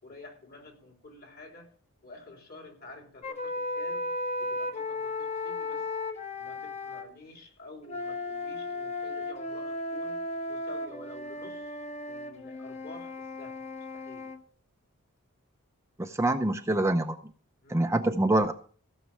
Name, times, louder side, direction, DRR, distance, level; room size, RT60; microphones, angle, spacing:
voice 1, 0.0-1.7 2.0-4.1 4.4-5.9 6.4-11.8 12.1-13.7 13.9-14.3 17.6-17.9, left 2 dB, 45° left, 3.8 m, -49 dB
sound 1, 3.2-7.1 7.9-14.4, left 2 dB, 30° left, 1.4 m, -35 dB
voice 2, 16.0-17.2 17.7-18.5, right 1 dB, 15° right, 0.6 m, -25 dB
15.5 x 6.5 x 7.3 m
head